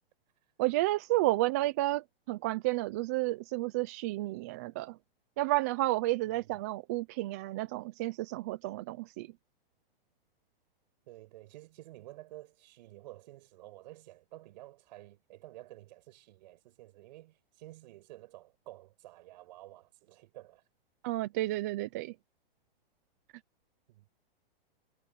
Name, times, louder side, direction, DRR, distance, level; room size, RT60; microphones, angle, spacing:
voice 1, 0.6-5.0 5.4-9.3 21.0-22.1, right 18 dB, 15° right, 0.4 m, -31 dB
voice 2, 6.2-6.6 11.1-20.6 23.9-24.1, right 17 dB, 45° right, 7.1 m, -51 dB
hypercardioid pair, 160°, 30 cm